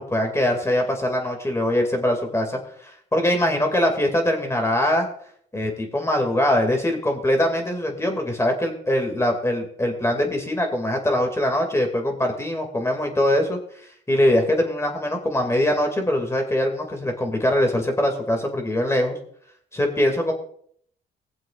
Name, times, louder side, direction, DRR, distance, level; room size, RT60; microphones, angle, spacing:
voice 1, 0.0-2.6 3.1-5.1 5.5-13.6 14.1-19.2 19.7-20.3, left 1 dB, 15° left, 3 dB, 2.3 m, -22 dB
21.0 x 7.6 x 2.5 m, 0.62 s
cardioid pair, 90°, 20 cm